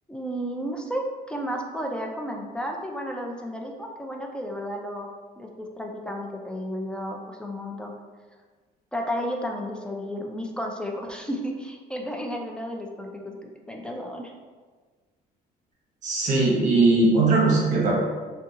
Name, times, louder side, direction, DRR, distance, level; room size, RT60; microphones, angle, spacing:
voice 1, 0.1-5.1 5.4-7.9 8.9-14.3, equal, 5° left, 1 dB, 0.4 m, -32 dB
voice 2, 16.0-17.9, right 3 dB, 45° right, -3 dB, 1.1 m, -20 dB
2.7 x 2.3 x 3.7 m, 1.4 s
cardioid pair, 110°, 17 cm